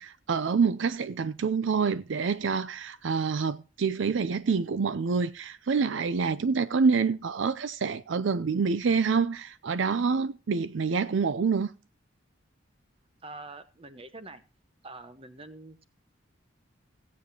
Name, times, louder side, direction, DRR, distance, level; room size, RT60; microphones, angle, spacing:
voice 1, 0.0-11.7, right 5 dB, 65° right, 0.4 m, -27 dB
voice 2, 13.2-14.4 14.8-15.8, right 2 dB, 30° right, 1.0 m, -45 dB
17.0 x 8.5 x 2.8 m
head